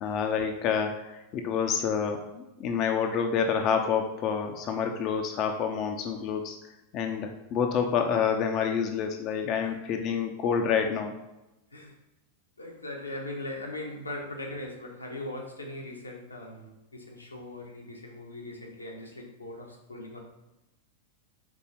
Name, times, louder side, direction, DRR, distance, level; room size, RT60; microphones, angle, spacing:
voice 1, 0.0-6.6 6.9-11.1, left 7 dB, 35° left, 5 dB, 0.6 m, -28 dB
voice 2, 12.6-20.2, left 1 dB, 80° left, 1 dB, 1.2 m, -40 dB
5.3 x 4.1 x 5.6 m, 0.95 s
figure-of-eight pair, 90°, 0 cm